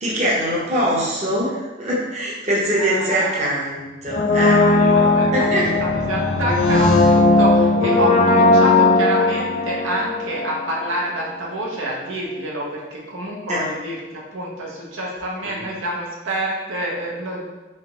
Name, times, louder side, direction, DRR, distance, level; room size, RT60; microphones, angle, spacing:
voice 1, 0.0-4.6 5.3-5.7 13.5-13.6, equal, 35° right, -5 dB, 0.8 m, -22 dB
voice 2, 2.8-3.4 4.5-17.5, right 1 dB, 80° right, -3 dB, 0.7 m, -28 dB
Brass instrument, 4.1-10.9 11.2-11.3, left 2 dB, 35° left, 0.3 m, -17 dB
sound 1, 4.5-8.2, equal, 75° left, 0.7 m, -29 dB
3.7 x 3.2 x 3.0 m, 1.1 s
head